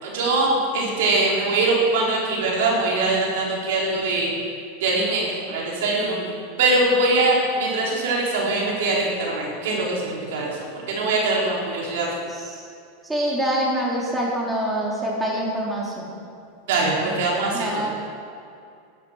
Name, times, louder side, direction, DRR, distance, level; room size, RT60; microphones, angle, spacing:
voice 1, 0.0-4.3 4.8-6.3 6.6-12.1 16.7-17.9, right 2 dB, 75° right, -3 dB, 3.9 m, -22 dB
voice 2, 12.3-12.6 13.0-16.1 17.5-17.9, right 1 dB, 10° right, -4 dB, 3.4 m, -25 dB
12.0 x 10.5 x 6.3 m, 2.4 s
hypercardioid pair, 110°, 0 cm